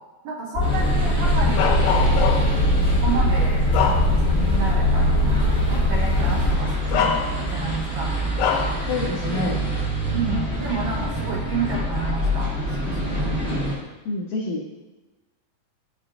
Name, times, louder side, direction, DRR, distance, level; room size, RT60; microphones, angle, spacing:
voice 1, 0.2-2.1 2.9-8.1 9.3-9.6 10.1-12.5 12.9-13.5, right 4 dB, 85° right, -3 dB, 1.5 m, -30 dB
sound 1, 0.5-6.6, left 1 dB, 45° left, 1.5 m, -21 dB
sound 2, 0.6-13.8, equal, 30° right, 0.3 m, -26 dB
Bark, 1.6-2.6 3.2-4.5 4.9-5.1 6.2-6.3 6.9-7.7 8.4-8.8, left 7 dB, 90° left, 2.5 m, -24 dB
voice 2, 8.9-9.6 14.1-14.6, left 3 dB, 75° left, -3 dB, 1.8 m, -27 dB
11.5 x 4.8 x 2.5 m, 1.1 s
omnidirectional pair, 4.3 m